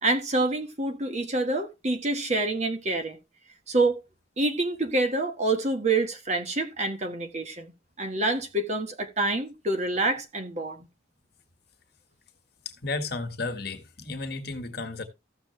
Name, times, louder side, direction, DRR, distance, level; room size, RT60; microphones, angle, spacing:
voice 1, 0.0-3.2 3.7-4.0 4.4-7.7 8.0-10.9, right 2 dB, 35° right, 1.5 m, -27 dB
voice 2, 12.6-15.0, left 3 dB, 55° left, 1.7 m, -33 dB
14.5 x 6.6 x 3.2 m
head